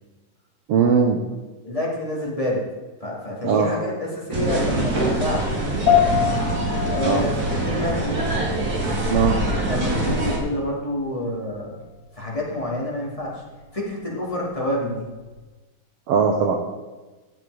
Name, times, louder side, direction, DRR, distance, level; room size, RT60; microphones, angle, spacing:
voice 1, 0.7-1.2 3.4-3.7 7.0-7.2 9.1-9.3 16.1-16.6, right 6 dB, 80° right, 3 dB, 1.4 m, -19 dB
voice 2, 1.6-2.6 3.0-6.1 6.9-8.2 9.7-11.8 12.1-13.4 13.7-15.1, left 1 dB, 10° left, -4 dB, 2.0 m, -28 dB
sound 1, 4.3-10.4, right 2 dB, 30° right, 2.0 m, -24 dB
sound 2, 5.9-15.4, left 10 dB, 30° left, 5.2 m, -28 dB
12.5 x 7.8 x 4.9 m, 1.2 s
omnidirectional pair, 3.9 m